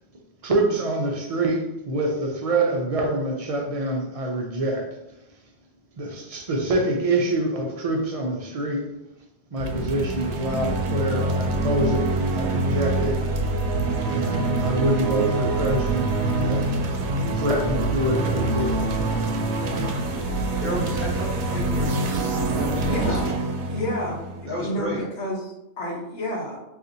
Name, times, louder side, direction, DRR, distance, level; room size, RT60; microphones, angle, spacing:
voice 1, 0.4-5.0 6.0-8.9 9.5-13.3 14.1-16.7 17.2-18.8, right 2 dB, 50° right, 2 dB, 0.4 m, -26 dB
sound 1, 9.6-25.0, right 2 dB, 80° right, 0.9 m, -25 dB
voice 2, 20.6-23.2 24.5-25.1, equal, 15° left, -4 dB, 0.8 m, -32 dB
voice 3, 22.8-23.3 23.7-24.2 24.6-25.5 25.8-26.6, equal, 85° left, -2 dB, 1.2 m, -29 dB
4.0 x 2.5 x 2.6 m, 0.90 s
omnidirectional pair, 1.1 m